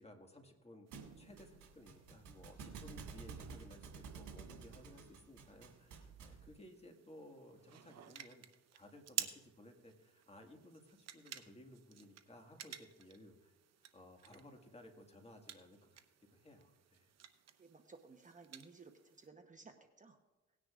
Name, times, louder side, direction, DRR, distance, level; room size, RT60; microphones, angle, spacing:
voice 1, 0.0-8.4 8.7-13.5 13.9-16.0 16.3-17.1, left 1 dB, 20° left, 3 dB, 1.9 m, -58 dB
sound 1, 0.9-19.3, right 9 dB, 60° right, 0.9 m, -52 dB
Thump thud, 0.9-6.5, right 5 dB, 80° right, 2.2 m, -52 dB
voice 2, 17.6-20.2, right 4 dB, 25° right, 5 dB, 1.0 m, -58 dB
18.5 x 9.9 x 2.5 m, 1.1 s
cardioid pair, 90°, 30 cm